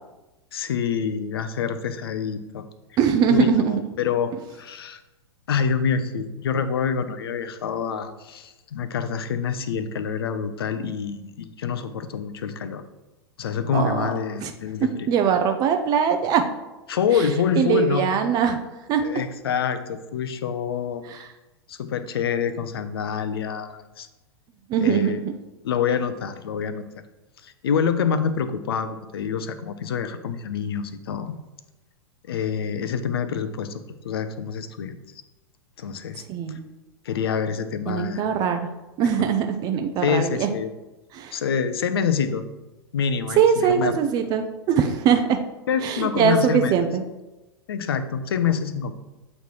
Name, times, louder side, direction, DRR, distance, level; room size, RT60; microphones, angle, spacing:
voice 1, 0.5-2.7 3.3-5.0 5.5-12.8 13.4-15.1 16.9-18.1 19.0-21.0 21.7-24.1 24.8-25.2 25.6-26.8 27.4-31.4 32.3-35.0 35.8-36.2 37.0-38.2 39.2-39.3 40.0-40.7 41.3-42.5 42.9-44.0 45.7-46.7 47.7-48.9, left 7 dB, 60° left, 11 dB, 0.6 m, -26 dB
voice 2, 3.0-3.8 13.7-14.1 14.4-14.5 14.8-16.5 17.1-17.3 17.6-18.6 18.9-19.1 21.1-21.3 24.7-25.3 36.3-36.7 37.9-38.6 39.0-40.5 41.1-41.4 43.4-45.4 45.8-47.0, right 7 dB, 30° right, 6 dB, 0.5 m, -21 dB
7.8 x 3.2 x 4.5 m, 1.0 s
figure-of-eight pair, 100°, 14 cm